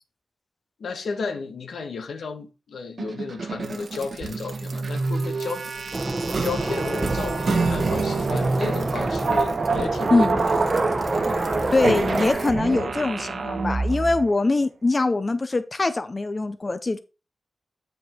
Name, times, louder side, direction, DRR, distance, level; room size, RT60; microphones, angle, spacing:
voice 1, 0.8-5.7 6.4-10.6, left 4 dB, 85° left, 1.2 m, -33 dB
sound 1, 3.0-14.2, right 3 dB, 60° right, 1.2 m, -27 dB
sound 2, 5.9-12.3, right 2 dB, 25° right, 0.9 m, -27 dB
voice 2, 11.7-17.0, left 3 dB, 35° left, 0.6 m, -23 dB
8.2 x 5.3 x 4.4 m
wide cardioid pair, 90°, 0 cm